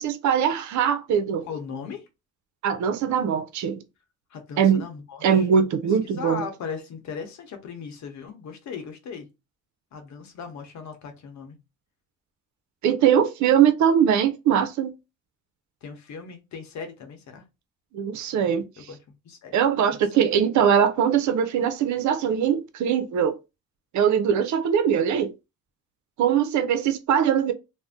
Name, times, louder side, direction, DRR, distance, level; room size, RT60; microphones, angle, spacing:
voice 1, 0.0-1.5 2.6-3.8 4.6-4.8 5.2-6.4 12.8-14.9 17.9-18.6 19.5-23.4 23.9-25.3 26.2-27.5, right 8 dB, 75° right, 0.6 m, -21 dB
voice 2, 1.4-2.1 4.3-5.4 6.1-9.3 9.9-11.6 13.0-13.1 15.8-17.4 18.8-19.0 19.2-19.6, left 6 dB, 70° left, 0.8 m, -38 dB
2.5 x 2.1 x 3.5 m
cardioid pair, 90°, 30 cm